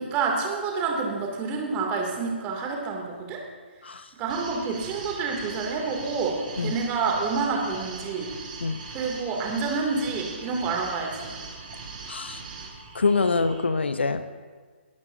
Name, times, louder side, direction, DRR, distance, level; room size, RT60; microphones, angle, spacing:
voice 1, 0.0-3.4 4.2-8.3 8.9-11.4, right 4 dB, 20° right, 0 dB, 2.7 m, -28 dB
sound 1, 4.3-13.6, right 4 dB, 45° right, 4.0 m, -41 dB
voice 2, 12.1-12.4 12.9-14.3, left 4 dB, 65° left, 11 dB, 0.9 m, -25 dB
28.5 x 13.0 x 2.8 m, 1.5 s
figure-of-eight pair, 135°, 6 cm